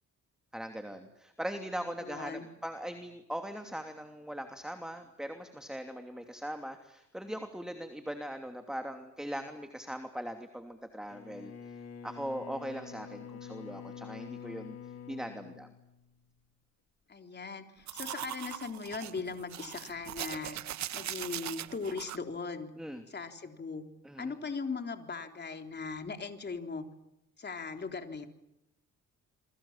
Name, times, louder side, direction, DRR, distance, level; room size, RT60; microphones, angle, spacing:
voice 1, 0.5-11.5 12.0-14.8 15.1-15.7 22.8-23.0 24.0-24.3, equal, ahead, 6 dB, 2.9 m, -40 dB
voice 2, 2.0-2.5 17.1-20.6 20.9-22.7 23.1-23.9 24.2-26.9 27.4-28.3, left 4 dB, 35° left, 5 dB, 3.7 m, -39 dB
Bowed string instrument, 11.0-16.4, left 7 dB, 55° left, 3.0 m, -47 dB
sound 1, 17.9-22.2, right 12 dB, 65° right, 1.0 m, -40 dB
28.5 x 23.5 x 7.4 m, 0.87 s
cardioid pair, 90°, 30 cm